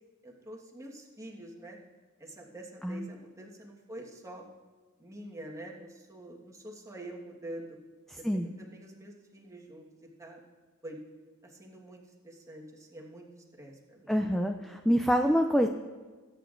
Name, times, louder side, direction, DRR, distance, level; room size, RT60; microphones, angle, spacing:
voice 1, 0.2-1.8 2.2-4.4 5.0-7.8 8.1-10.4 10.8-11.0 11.4-13.3 13.5-14.1, right 1 dB, 15° right, -1 dB, 1.4 m, -46 dB
voice 2, 14.1-15.7, equal, ahead, 5 dB, 0.3 m, -26 dB
20.5 x 9.0 x 2.5 m, 1.3 s
head